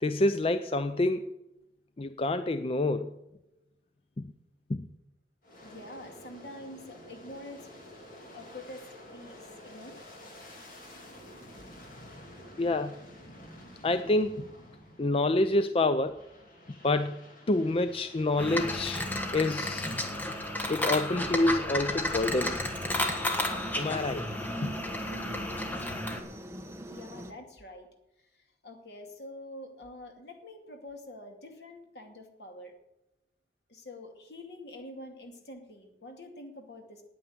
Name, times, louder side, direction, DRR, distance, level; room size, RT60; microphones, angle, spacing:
voice 1, 0.0-1.3 2.0-3.2 4.2-4.3 4.7-4.8 12.6-12.9 13.8-14.5 15.0-16.3 16.7-17.2 17.5-19.1 19.3-19.9 20.7-22.6 23.8-24.3 24.6-24.7, left 2 dB, 30° left, 10 dB, 0.4 m, -27 dB
Aircraft, 5.4-15.5 15.9-20.9, left 1 dB, 50° left, 2.9 m, -51 dB
voice 2, 5.6-7.7 8.3-8.8 9.1-10.0 26.9-27.9 28.2-32.7 33.7-37.0, left 1 dB, 65° left, 3 dB, 2.4 m, -46 dB
sound 1, 18.4-26.2, left 1 dB, 10° left, 1.4 m, -32 dB
Aircraft 2, 22.2-27.3, equal, 15° right, 1.0 m, -44 dB
9.3 x 9.1 x 9.5 m, 0.90 s
head